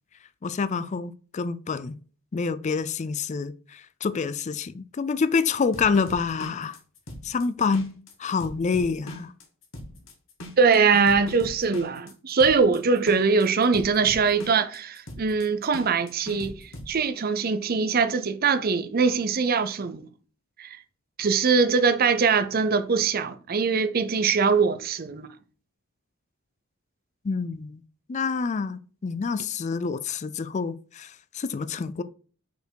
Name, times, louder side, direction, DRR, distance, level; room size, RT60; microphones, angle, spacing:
voice 1, 0.4-2.0 2.3-6.8 7.2-7.9 8.2-9.3 27.2-27.8 28.1-32.0, left 5 dB, 35° left, 0.4 m, -27 dB
sound 1, 5.6-16.9, equal, 70° left, 1.4 m, -41 dB
voice 2, 10.6-20.1 20.6-20.8 21.2-25.3, right 5 dB, 45° right, 0.6 m, -22 dB
5.4 x 4.4 x 4.5 m
head